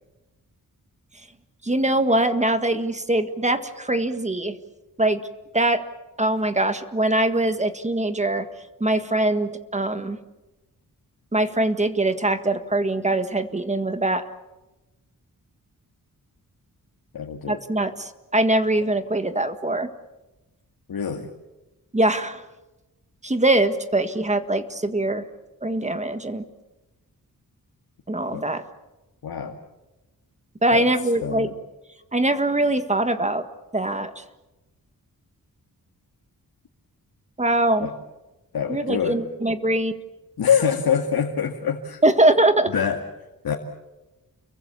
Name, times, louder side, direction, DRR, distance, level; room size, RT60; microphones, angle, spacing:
voice 1, 1.6-4.5 5.0-5.2 5.5-5.8 6.2-8.5 8.8-10.2 11.3-14.2 17.5-19.9 21.9-22.4 23.2-25.2 25.6-26.4 28.1-28.6 30.6-31.5 32.1-33.4 33.7-34.2 37.4-37.9 38.7-39.9 42.0-42.7, right 1 dB, 20° right, 9 dB, 1.6 m, -22 dB
voice 2, 17.1-17.6 20.9-21.3 28.3-28.4 29.2-29.6 30.7-30.9 31.2-31.6 37.8-37.9 38.5-39.2 40.4-42.0 42.7-43.0 43.4-43.5, left 7 dB, 80° left, 2 dB, 2.2 m, -24 dB
30.0 x 23.0 x 7.0 m, 1.0 s
wide cardioid pair, 140°, 36 cm